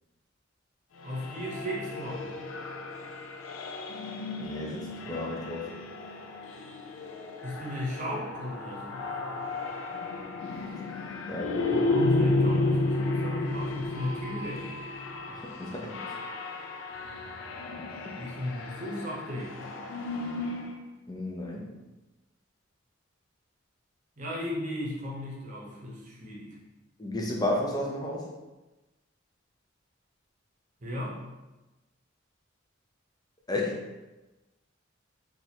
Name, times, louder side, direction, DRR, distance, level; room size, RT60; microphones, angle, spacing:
sound 1, 1.0-20.8, left 2 dB, 85° left, 0.4 m, -32 dB
voice 1, 1.0-2.3 7.4-9.5 11.7-14.7 18.2-19.7 24.2-26.5 30.8-31.2, left 1 dB, 40° right, -4 dB, 0.9 m, -36 dB
voice 2, 4.4-5.7 11.3-11.6 15.3-15.9 21.1-21.7 27.0-28.3 33.5-33.8, left 1 dB, 20° left, -2 dB, 0.5 m, -32 dB
2.9 x 2.5 x 4.1 m, 1.1 s
head